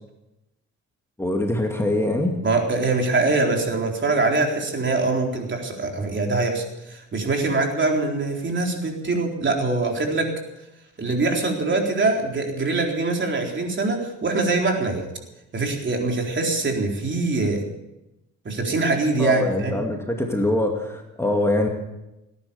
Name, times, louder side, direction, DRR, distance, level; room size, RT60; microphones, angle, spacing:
voice 1, 1.2-2.4 19.2-21.7, left 1 dB, 10° left, 1 dB, 2.4 m, -23 dB
voice 2, 2.4-10.3 11.0-15.1 15.5-17.6 18.4-19.8, right 3 dB, 40° right, 1 dB, 4.1 m, -23 dB
18.5 x 10.5 x 7.1 m, 0.93 s
cardioid pair, 90°, 30 cm